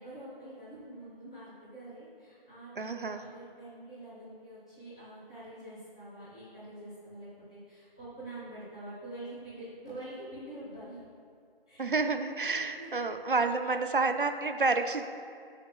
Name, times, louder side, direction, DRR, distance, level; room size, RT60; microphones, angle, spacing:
voice 1, 0.0-11.0 11.7-11.9 12.7-12.9 13.6-13.8, right 1 dB, 5° left, -17 dB, 1.1 m, -46 dB
voice 2, 2.8-3.2 11.8-15.1, right 3 dB, 55° right, 7 dB, 0.6 m, -29 dB
15.5 x 6.4 x 2.3 m, 2.3 s
figure-of-eight pair, 170°, 31 cm